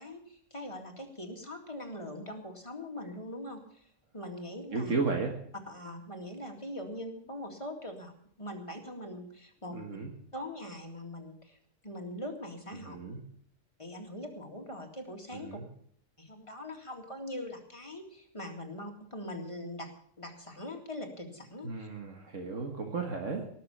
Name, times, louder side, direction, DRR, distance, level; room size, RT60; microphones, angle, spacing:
voice 1, 0.0-4.9 5.7-9.8 10.3-13.0 13.8-15.6 16.2-19.9 20.2-21.9, left 1 dB, 25° left, 2 dB, 2.2 m, -42 dB
voice 2, 4.7-5.4 9.7-10.1 12.9-13.2 15.4-15.6 21.6-23.5, right 4 dB, 70° right, 2 dB, 1.9 m, -34 dB
18.5 x 6.8 x 8.5 m, 0.64 s
omnidirectional pair, 1.4 m